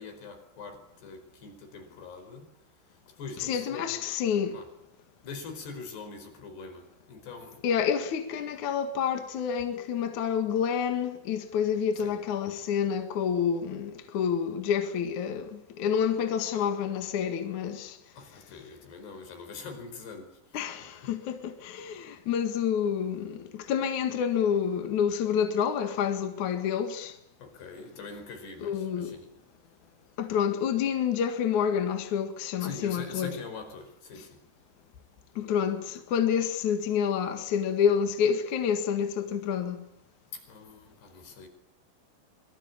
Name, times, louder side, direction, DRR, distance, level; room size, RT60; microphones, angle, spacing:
voice 1, 0.0-2.5 2.9-4.0 4.5-4.7 5.2-7.7 12.0-12.2 18.2-21.1 27.4-29.3 32.6-34.4 40.3-41.5, left 4 dB, 75° left, 6.9 m, -43 dB
voice 2, 3.4-4.6 7.6-18.0 20.5-27.1 28.6-29.2 30.2-33.4 35.4-39.8, left 8 dB, 55° left, 2.8 m, -28 dB
25.5 x 24.0 x 8.7 m
omnidirectional pair, 4.8 m